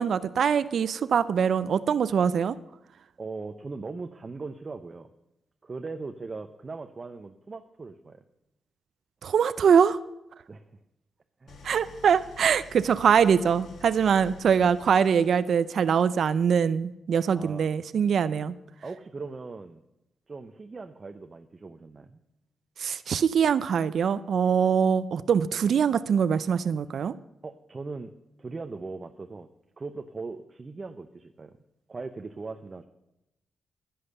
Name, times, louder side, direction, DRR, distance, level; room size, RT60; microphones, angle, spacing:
voice 1, 0.0-2.6 9.2-10.0 11.6-18.5 22.8-27.1, right 7 dB, 70° right, 15 dB, 0.4 m, -23 dB
voice 2, 3.2-5.1 5.6-8.2 10.5-10.7 11.4-11.7 17.3-17.7 18.8-19.8 20.3-22.2 27.4-28.1 28.4-29.5 29.8-31.6 31.9-32.8, right 3 dB, 40° right, 7 dB, 0.7 m, -39 dB
Idling, 11.5-15.7, left 4 dB, 80° left, 1.6 m, -49 dB
11.0 x 10.0 x 6.7 m, 0.91 s
cardioid pair, 75°, 0 cm